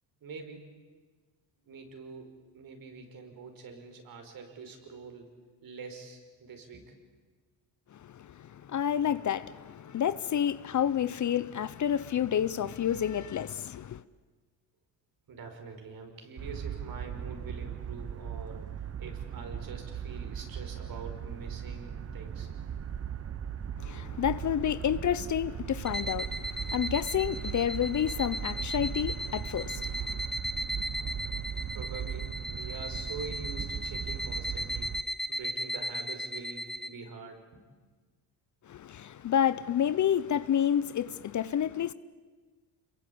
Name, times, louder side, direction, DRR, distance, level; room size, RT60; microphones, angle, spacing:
voice 1, 0.2-0.7 1.7-5.3 5.6-7.0 15.3-22.5 31.2-31.3 31.7-34.9 35.3-37.6, right 4 dB, 55° right, 5.4 m, -45 dB
voice 2, 7.9-14.0 23.8-30.2 38.7-41.9, left 9 dB, 45° left, 0.8 m, -29 dB
sound 1, 16.4-35.0, right 8 dB, 35° right, 1.0 m, -38 dB
sound 2, 25.8-36.9, equal, ahead, 1.2 m, -37 dB
26.5 x 22.5 x 8.6 m
cardioid pair, 95°, 41 cm